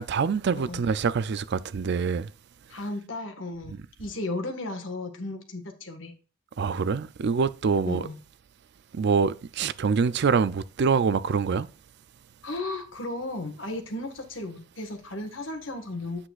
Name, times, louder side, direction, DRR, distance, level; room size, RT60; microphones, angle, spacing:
voice 1, 0.0-2.3 6.6-8.0 8.9-11.7, right 5 dB, 60° right, 0.4 m, -25 dB
voice 2, 2.7-6.1 7.8-8.2 12.4-16.3, left 2 dB, 75° left, 1.6 m, -35 dB
8.6 x 7.9 x 2.4 m
head